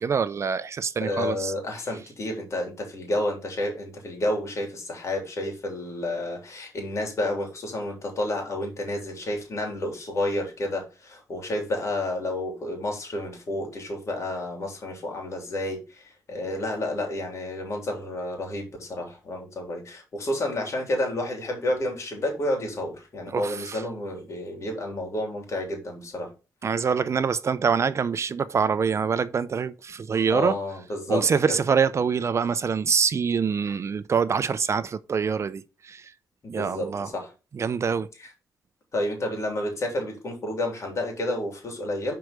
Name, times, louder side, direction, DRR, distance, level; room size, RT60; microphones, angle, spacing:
voice 1, 0.0-1.5 23.3-23.8 26.6-30.6 31.1-36.0 36.5-37.1 37.6-38.1, right 6 dB, 50° right, 0.5 m, -25 dB
voice 2, 1.0-26.3 30.3-31.6 36.4-37.3 38.2-38.3 38.9-42.1, left 1 dB, 50° left, 3.2 m, -30 dB
6.1 x 4.6 x 5.1 m
cardioid pair, 80°, 6 cm